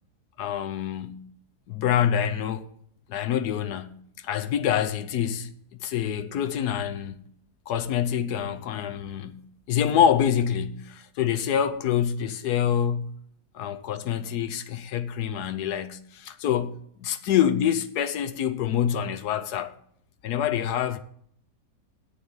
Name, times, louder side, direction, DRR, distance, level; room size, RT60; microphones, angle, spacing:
voice 1, 0.4-1.3 1.7-2.7 3.1-5.5 5.8-7.2 7.7-13.1 13.6-19.8 20.2-21.0, left 9 dB, 80° left, 1.3 m, -26 dB
8.1 x 7.0 x 7.2 m
omnidirectional pair, 1.7 m